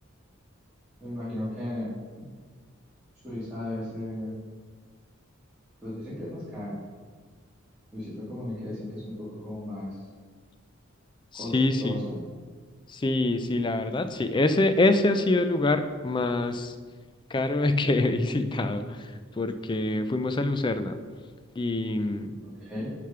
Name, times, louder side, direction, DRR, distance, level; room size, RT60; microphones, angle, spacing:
voice 1, 1.0-2.3 3.2-4.3 5.8-6.8 7.9-9.9 11.3-11.5 11.8-12.2 22.4-22.9, left 1 dB, 5° right, -14 dB, 2.1 m, -35 dB
voice 2, 11.3-12.0 12.9-16.8 17.3-21.0 21.6-22.3, left 2 dB, 25° left, 10 dB, 0.4 m, -25 dB
6.6 x 5.1 x 5.8 m, 1.5 s
head